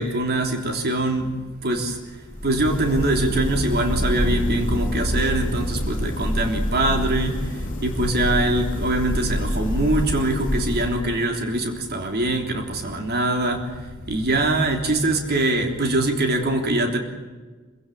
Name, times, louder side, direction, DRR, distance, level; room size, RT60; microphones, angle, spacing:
voice 1, 0.0-17.0, right 1 dB, 50° right, 3 dB, 3.4 m, -23 dB
sound 1, 2.2-11.4, left 1 dB, 40° left, 2.6 m, -26 dB
27.5 x 16.0 x 8.6 m, 1.4 s
head